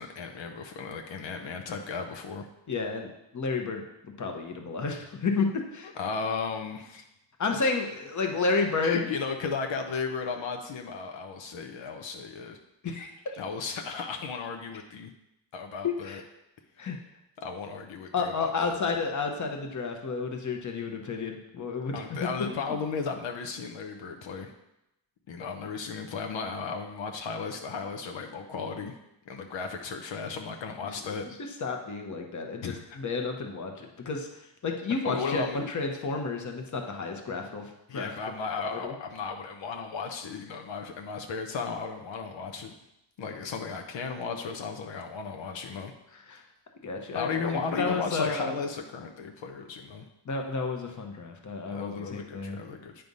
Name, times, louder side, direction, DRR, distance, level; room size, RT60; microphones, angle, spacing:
voice 1, 0.0-2.5 6.0-7.1 8.8-12.6 13.4-15.1 15.5-16.2 17.4-18.8 21.9-24.5 25.3-28.9 29.3-31.3 32.6-33.0 35.0-35.7 37.9-42.7 43.2-45.9 47.1-50.1 51.7-53.0, left 5 dB, 80° left, 3 dB, 0.8 m, -35 dB
voice 2, 2.7-5.9 7.4-9.1 12.8-13.4 15.8-16.2 16.8-17.0 18.1-22.3 31.1-31.3 31.6-34.3 34.6-38.1 38.6-38.9 46.3-46.4 46.8-47.4 47.8-48.6 50.2-52.6, left 4 dB, 40° left, 3 dB, 1.0 m, -31 dB
9.2 x 3.4 x 5.4 m, 0.86 s
wide cardioid pair, 125°, 44 cm